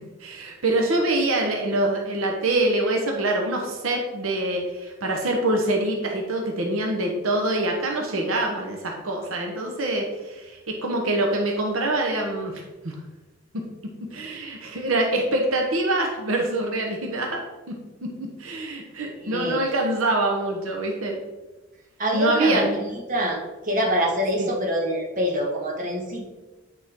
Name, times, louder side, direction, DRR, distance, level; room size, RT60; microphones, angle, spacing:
voice 1, 0.2-12.9 14.1-17.4 18.0-18.1 18.4-21.2 22.1-22.9 24.4-24.5, right 2 dB, 85° right, 1 dB, 1.0 m, -25 dB
voice 2, 19.0-19.6 22.0-22.6 23.1-23.4 23.6-26.3, equal, 40° right, -2 dB, 1.5 m, -25 dB
9.2 x 4.5 x 3.6 m, 1.2 s
head